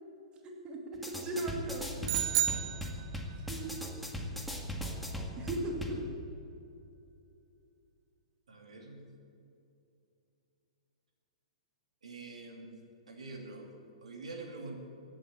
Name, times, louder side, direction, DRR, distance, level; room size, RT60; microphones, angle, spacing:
voice 1, 0.4-2.1 3.5-3.7 5.4-6.1, right 2 dB, 25° right, 2 dB, 2.5 m, -38 dB
sound 1, 0.9-6.0, equal, ahead, 1.9 m, -39 dB
sound 2, 2.1-3.5, right 13 dB, 45° right, 0.7 m, -32 dB
voice 2, 8.5-9.1 12.0-12.8 13.1-14.8, right 3 dB, 75° right, 2 dB, 2.7 m, -45 dB
16.0 x 8.9 x 8.6 m, 2.7 s
hypercardioid pair, 120°, 4 cm